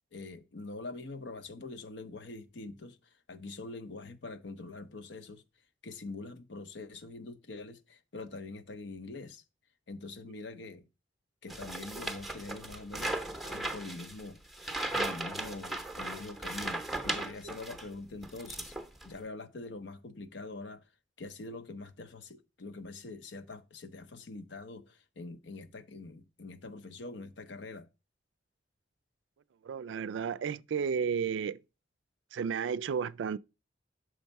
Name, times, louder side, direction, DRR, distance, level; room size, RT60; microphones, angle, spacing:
voice 1, 0.1-3.0 3.3-5.4 5.8-9.4 9.9-10.8 11.4-13.2 13.4-14.4 14.9-18.7 19.0-20.9 21.2-27.9, left 3 dB, 75° left, 0.8 m, -44 dB
sound 1, 11.5-17.9 18.2-19.2, right 2 dB, ahead, 0.7 m, -37 dB
voice 2, 29.7-31.6 32.3-33.4, right 6 dB, 90° right, 0.3 m, -32 dB
6.3 x 4.5 x 5.2 m
head